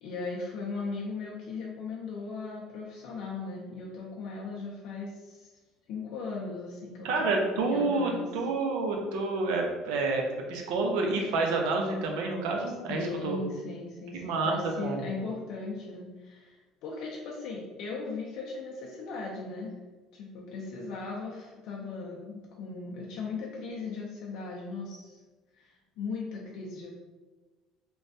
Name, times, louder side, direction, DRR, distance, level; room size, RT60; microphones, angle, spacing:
voice 1, 0.0-5.5 5.9-8.3 12.9-19.7 20.1-25.2 25.6-26.9, left 3 dB, 65° left, -3 dB, 0.4 m, -38 dB
voice 2, 7.0-10.2 10.5-13.4 14.1-15.0, right 3 dB, 85° right, 1 dB, 0.5 m, -29 dB
3.2 x 2.2 x 2.6 m, 1.3 s
cardioid pair, 120°, 0 cm